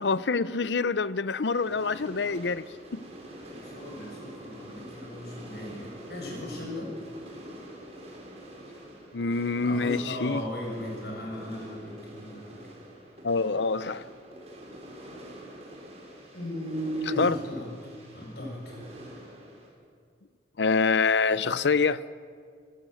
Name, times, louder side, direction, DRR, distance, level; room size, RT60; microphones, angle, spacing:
voice 1, 0.0-2.7 2.9-3.0 9.1-10.4 13.2-14.1 17.2-17.4 20.6-22.0, left 4 dB, 80° left, 0.6 m, -26 dB
sound 1, 1.5-19.7, right 1 dB, 40° right, 5.9 m, -46 dB
voice 2, 3.5-6.9 9.5-12.5 16.3-17.7 18.1-18.9, equal, 65° left, 7.3 m, -36 dB
26.5 x 15.5 x 8.0 m
head